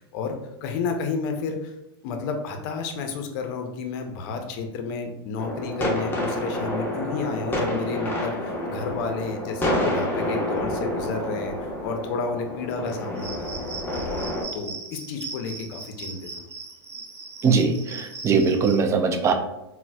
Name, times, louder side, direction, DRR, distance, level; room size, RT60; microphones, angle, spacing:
voice 1, 0.0-1.7 2.0-16.3, left 4 dB, 50° left, 5 dB, 0.5 m, -31 dB
sound 1, 5.4-14.4, left 1 dB, 15° left, 0.7 m, -28 dB
Cricket, 13.2-18.8, right 4 dB, 80° right, 0.9 m, -39 dB
voice 2, 17.4-19.3, right 5 dB, 20° right, 6 dB, 0.3 m, -21 dB
3.9 x 2.1 x 2.2 m, 0.91 s
hypercardioid pair, 105°, 14 cm